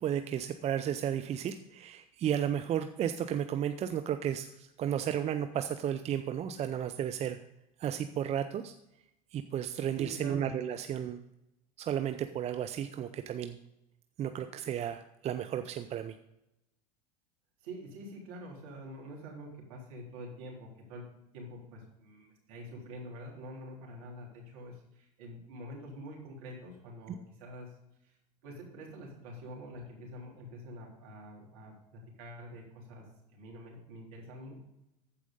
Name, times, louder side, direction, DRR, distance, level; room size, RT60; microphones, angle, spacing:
voice 1, 0.0-7.4 7.8-8.7 9.3-11.2 11.8-13.6 14.2-16.2, right 9 dB, 35° right, 9 dB, 0.6 m, -33 dB
voice 2, 10.0-10.5 17.6-21.1 21.3-27.7 28.0-28.1 28.4-33.1 33.3-34.6, equal, 65° right, -2 dB, 3.6 m, -46 dB
14.5 x 4.9 x 5.3 m, 0.88 s
hypercardioid pair, 85°, 20 cm